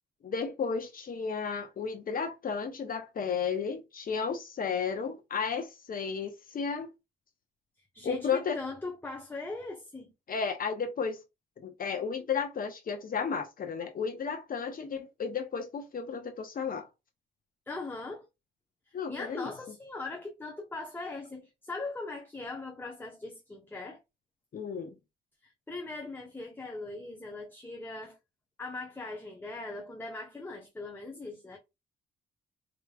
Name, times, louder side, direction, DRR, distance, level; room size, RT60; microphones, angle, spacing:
voice 1, 0.2-6.9 8.0-8.6 10.3-11.2 11.6-16.9 18.9-19.5 24.5-24.9, left 6 dB, 45° left, 0.8 m, -33 dB
voice 2, 7.9-10.1 17.7-18.3 18.9-24.0 25.4-28.2 28.6-31.6, left 3 dB, 10° left, 0.9 m, -40 dB
4.8 x 3.0 x 2.4 m
cardioid pair, 90°, 20 cm